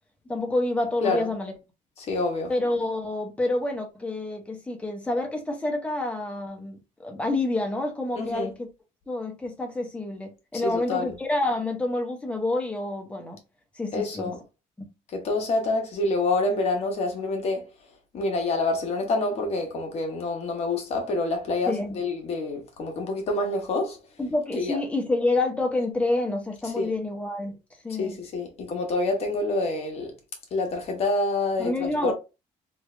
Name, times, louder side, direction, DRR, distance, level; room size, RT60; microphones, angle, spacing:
voice 1, 0.3-1.5 2.5-8.7 9.1-13.4 13.7-14.3 14.8-14.9 21.7-22.0 24.2-27.6 27.8-28.2 31.6-32.1, left 2 dB, 10° left, 0.7 m, -28 dB
voice 2, 2.0-2.5 8.1-8.5 10.6-11.1 13.9-14.4 15.1-17.7 18.1-24.0 24.5-24.8 26.6-26.9 28.0-30.1 30.5-32.1, left 2 dB, 45° left, 1.1 m, -27 dB
3.2 x 2.4 x 3.2 m
cardioid pair, 170°, 15 cm